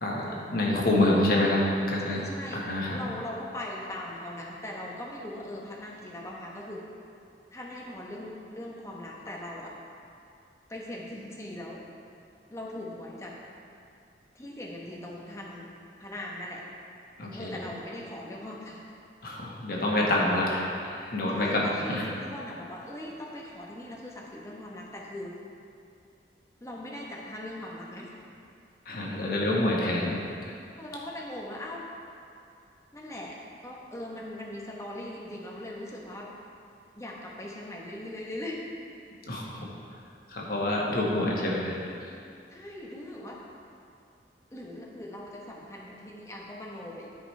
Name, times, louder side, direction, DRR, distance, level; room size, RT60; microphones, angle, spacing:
voice 1, 0.5-2.2 2.5-3.0 17.2-17.5 19.2-22.1 28.8-30.5 39.3-39.7 40.3-41.7, left 1 dB, 55° left, -3 dB, 1.4 m, -27 dB
voice 2, 2.0-6.8 7.5-9.7 10.7-11.8 12.5-13.3 14.3-15.7 16.0-16.6 17.3-18.8 21.3-25.4 26.6-28.1 30.8-31.8 32.9-33.4 33.6-36.3 36.9-38.7 40.9-41.0 42.5-43.4 44.5-47.1, left 1 dB, 15° left, -3 dB, 1.0 m, -40 dB
12.5 x 5.1 x 3.3 m, 2.5 s
head